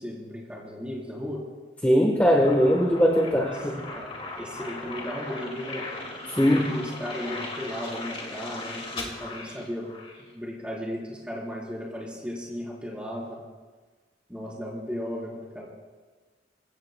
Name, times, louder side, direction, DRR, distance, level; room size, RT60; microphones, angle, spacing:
voice 1, 0.0-1.4 3.2-3.7 3.9-4.1 4.4-5.9 6.4-9.9 10.2-13.4 14.3-15.6, equal, 5° right, -4 dB, 3.9 m, -35 dB
voice 2, 1.8-3.4 6.4-6.8, equal, 10° left, 0 dB, 1.2 m, -20 dB
sound 1, 2.4-10.2, left 2 dB, 35° left, 2.2 m, -37 dB
24.0 x 16.0 x 2.3 m, 1.3 s
head